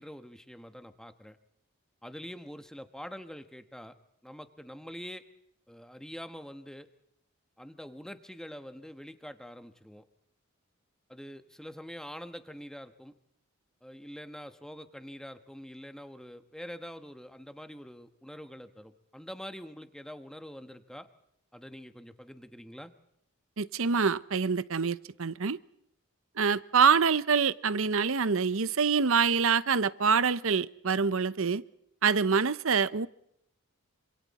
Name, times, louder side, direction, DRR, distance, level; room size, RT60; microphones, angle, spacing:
voice 1, 0.0-1.4 2.0-4.0 4.2-5.2 5.7-6.9 7.6-10.0 11.1-13.1 13.8-21.1 21.5-22.9, equal, 5° left, 9 dB, 1.2 m, -45 dB
voice 2, 23.6-25.6 26.4-31.6 32.0-33.1, right 5 dB, 65° right, 16 dB, 0.8 m, -25 dB
26.5 x 26.5 x 4.2 m, 0.76 s
head